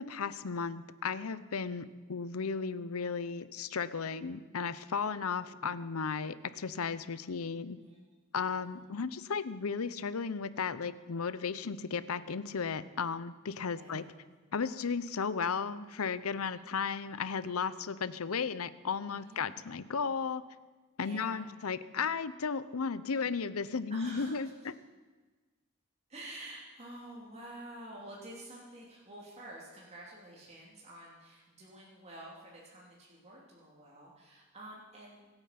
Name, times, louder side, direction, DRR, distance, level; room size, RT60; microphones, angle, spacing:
voice 1, 0.0-7.8 8.3-14.0 14.5-20.4 21.0-24.5, left 5 dB, 85° left, 15 dB, 0.7 m, -35 dB
voice 2, 8.3-8.7 13.7-14.2 16.3-16.7 19.1-19.5 21.0-21.5 23.9-24.3 26.1-35.3, right 1 dB, 30° right, -5 dB, 2.9 m, -49 dB
25.0 x 9.0 x 5.9 m, 1.3 s
head